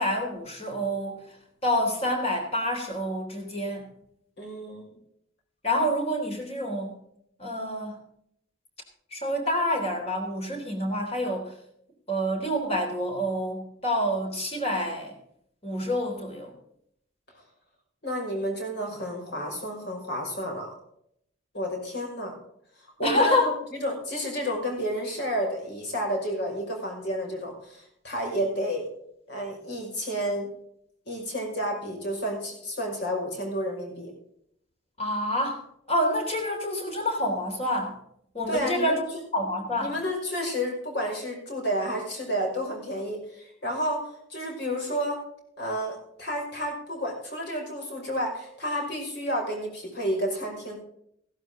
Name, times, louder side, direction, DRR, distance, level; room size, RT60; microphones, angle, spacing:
voice 1, 0.0-1.4 1.6-3.9 5.6-7.0 7.4-8.0 9.1-11.5 12.1-15.2 15.6-16.5 23.0-23.5 35.0-38.0 38.3-39.0 39.3-39.9, left 1 dB, 30° left, 3 dB, 3.5 m, -27 dB
voice 2, 4.4-4.9 18.0-20.7 21.5-22.4 23.0-28.8 29.3-30.5 31.1-34.1 38.5-39.0 39.8-45.2 45.6-50.8, equal, 55° left, 1 dB, 5.6 m, -31 dB
15.5 x 12.5 x 3.8 m, 0.71 s
head